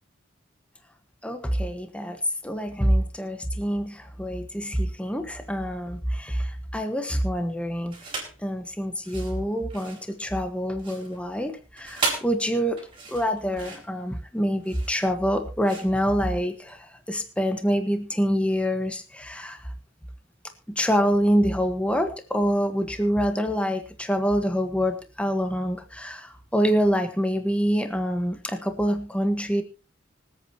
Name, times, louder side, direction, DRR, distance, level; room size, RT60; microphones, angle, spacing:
voice 1, 1.2-8.0 8.4-12.8 13.1-19.7 20.7-29.6, equal, 5° left, 6 dB, 1.4 m, -26 dB
sound 1, 7.9-8.4 8.9-16.8, right 3 dB, 25° right, 4.9 m, -35 dB
25.0 x 8.7 x 3.0 m, 0.31 s
head